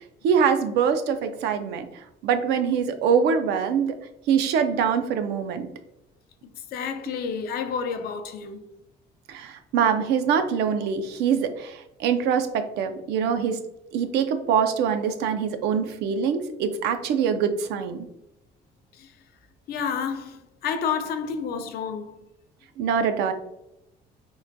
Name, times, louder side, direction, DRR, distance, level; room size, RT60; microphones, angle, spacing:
voice 1, 0.2-1.9 2.2-3.9 4.3-5.7 9.3-13.6 13.9-18.1 22.8-23.3, right 7 dB, 80° right, 0.4 m, -24 dB
voice 2, 6.7-8.7 18.9-19.1 19.7-22.2, left 6 dB, 65° left, 0.4 m, -30 dB
3.6 x 2.2 x 2.5 m
cardioid pair, 110°, 17 cm